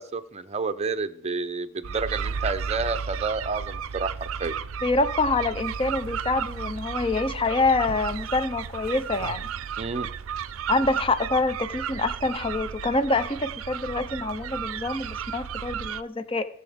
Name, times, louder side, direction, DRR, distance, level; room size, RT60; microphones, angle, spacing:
voice 1, 0.0-4.6 9.8-10.1, right 4 dB, 30° right, 11 dB, 0.6 m, -30 dB
sound 1, 1.8-16.0, right 7 dB, 75° right, 0.4 m, -33 dB
voice 2, 4.8-9.4 10.7-16.5, left 3 dB, 25° left, 10 dB, 0.8 m, -26 dB
19.0 x 6.8 x 3.6 m, 0.65 s
head